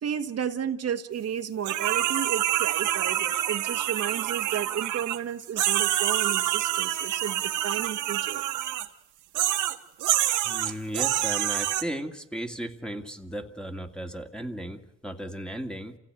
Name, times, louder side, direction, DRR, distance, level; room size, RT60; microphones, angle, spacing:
voice 1, 0.0-8.4, right 8 dB, 55° right, 6 dB, 1.5 m, -33 dB
sound 1, 1.6-5.2 5.6-8.9 9.3-11.8, right 13 dB, 80° right, 1.5 m, -27 dB
voice 2, 10.4-16.0, equal, 5° left, 5 dB, 2.2 m, -35 dB
28.0 x 16.5 x 9.0 m, 0.91 s
cardioid pair, 90°, 30 cm